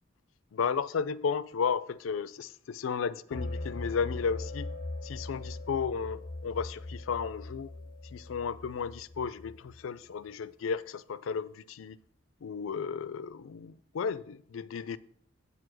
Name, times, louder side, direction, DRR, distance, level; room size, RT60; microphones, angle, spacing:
voice 1, 0.5-4.7 5.0-7.7 8.1-12.0 12.4-15.0, left 6 dB, 90° left, 0.4 m, -34 dB
sound 1, 3.3-9.8, left 2 dB, 45° left, 0.6 m, -40 dB
8.2 x 4.8 x 6.1 m
head